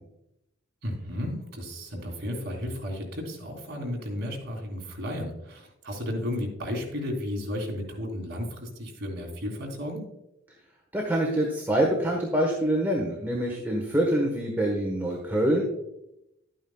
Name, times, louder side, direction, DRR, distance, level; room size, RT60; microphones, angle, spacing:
voice 1, 0.8-10.1, left 1 dB, 55° right, -1 dB, 3.1 m, -33 dB
voice 2, 10.9-15.6, right 1 dB, 10° right, -1 dB, 1.3 m, -25 dB
12.5 x 9.0 x 2.3 m, 0.85 s
head